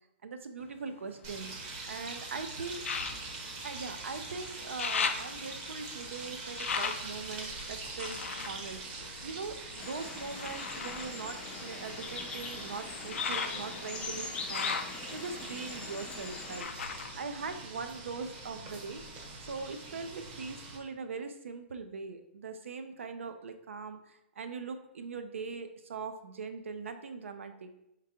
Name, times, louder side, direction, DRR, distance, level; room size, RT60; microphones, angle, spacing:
voice 1, 0.2-1.5 1.8-2.8 3.4-8.2 8.4-8.8 9.2-14.8 15.1-16.7 17.1-19.0 19.4-27.7, right 4 dB, 85° right, 8 dB, 0.5 m, -41 dB
sound 1, 0.6-2.0 2.8-4.3 4.6-9.7 10.4-18.2 18.5-19.4 19.8-19.9, left 5 dB, 90° left, 0.4 m, -39 dB
sound 2, 1.2-20.8, right 3 dB, 30° right, 0.9 m, -44 dB
sound 3, 9.8-16.6, left 4 dB, 15° left, 0.4 m, -41 dB
4.5 x 3.7 x 2.9 m, 0.83 s
hypercardioid pair, 155°, 7 cm